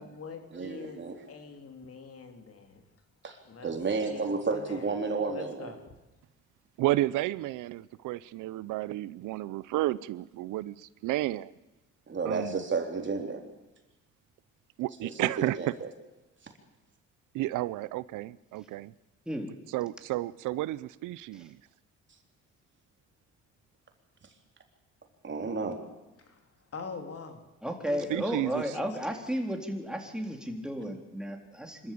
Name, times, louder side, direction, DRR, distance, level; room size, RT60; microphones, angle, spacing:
voice 1, 0.0-2.8 3.3-3.7 4.1-4.3 4.5-4.9 5.3-5.9 26.2-27.5 27.8-29.2, left 5 dB, 50° left, 3.5 m, -45 dB
voice 2, 0.5-1.2 3.2-5.7 12.1-13.5 15.0-15.1 15.4-15.9 25.2-25.9, right 4 dB, 40° right, 3.7 m, -32 dB
voice 3, 6.8-11.5 12.2-12.6 14.8-15.7 17.3-18.9 19.7-21.6 28.1-28.6, right 16 dB, 90° right, 0.6 m, -32 dB
voice 4, 27.6-31.9, equal, ahead, 3.8 m, -34 dB
25.5 x 13.5 x 8.6 m
cardioid pair, 90°, 30 cm